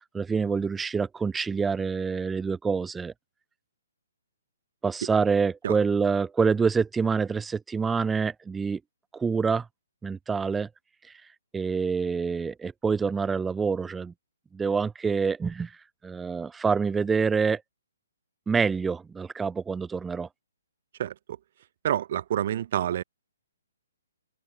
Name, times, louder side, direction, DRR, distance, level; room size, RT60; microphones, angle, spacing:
voice 1, 0.0-3.1 4.8-8.8 9.1-9.7 10.0-10.7 11.5-14.1 14.5-15.7 16.0-17.6 18.5-20.3, right 5 dB, 5° right, 3.9 m, -26 dB
voice 2, 21.8-23.0, right 11 dB, 35° right, 2.4 m, -27 dB
hypercardioid pair, 175°, 0 cm